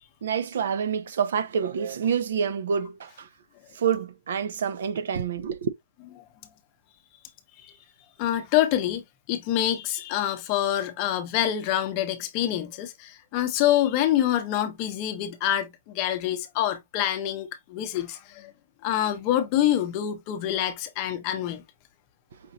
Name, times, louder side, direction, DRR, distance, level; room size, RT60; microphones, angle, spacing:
voice 1, 0.2-3.3 3.7-5.7, right 7 dB, 60° right, 0.6 m, -27 dB
voice 2, 8.2-18.5 18.8-21.6, left 12 dB, 25° left, 0.7 m, -26 dB
5.2 x 3.0 x 2.6 m
hypercardioid pair, 170°, 0 cm